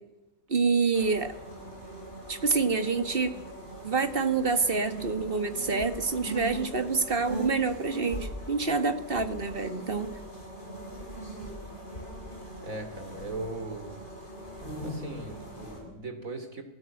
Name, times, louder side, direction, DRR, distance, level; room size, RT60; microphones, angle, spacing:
voice 1, 0.5-1.3 2.3-3.4 3.8-10.1, right 4 dB, 40° right, 10 dB, 1.8 m, -27 dB
sound 1, 0.9-15.8, right 1 dB, 35° left, 7.4 m, -40 dB
voice 2, 12.6-14.0 14.8-16.6, right 2 dB, 75° right, 7 dB, 3.5 m, -39 dB
27.0 x 17.5 x 7.9 m, 0.92 s
omnidirectional pair, 1.4 m